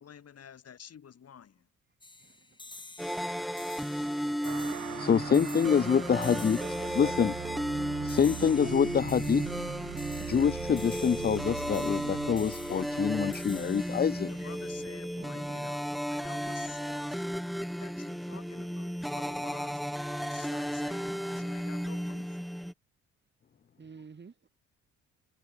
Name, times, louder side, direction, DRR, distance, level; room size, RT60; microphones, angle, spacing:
voice 1, 0.0-1.7 12.7-13.8 14.3-17.3 17.8-19.9 20.3-22.4, left 8 dB, 55° left, 5.9 m, -51 dB
sound 1, 2.0-15.5, left 2 dB, 15° left, 3.0 m, -50 dB
voice 2, 2.2-3.5 5.6-5.8 6.2-7.7 8.2-8.7 15.2-15.7 23.8-24.4, right 5 dB, 35° right, 6.9 m, -50 dB
sound 2, 3.0-22.7, equal, ahead, 1.9 m, -34 dB
sound 3, 4.4-15.4, right 15 dB, 85° right, 1.9 m, -42 dB
voice 3, 5.0-6.6 7.0-7.3 8.0-9.4 10.2-14.5, left 7 dB, 30° left, 0.8 m, -26 dB
cardioid pair, 90°, 30 cm